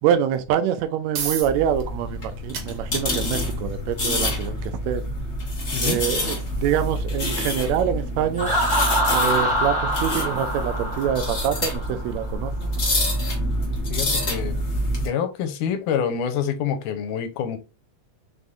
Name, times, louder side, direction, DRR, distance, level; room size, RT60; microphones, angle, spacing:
voice 1, 0.0-5.0 5.8-8.6 9.1-12.7, right 10 dB, 80° right, 1.6 m, -25 dB
sound 1, 1.0-15.5, right 6 dB, 60° right, 1.4 m, -42 dB
sound 2, 1.4-15.1, left 1 dB, 65° left, 0.6 m, -27 dB
voice 2, 5.7-6.0 13.2-14.6 15.0-17.6, left 8 dB, 85° left, 2.2 m, -27 dB
Laughter, 8.4-12.1, equal, 5° left, 0.9 m, -24 dB
5.3 x 3.5 x 2.5 m
omnidirectional pair, 3.7 m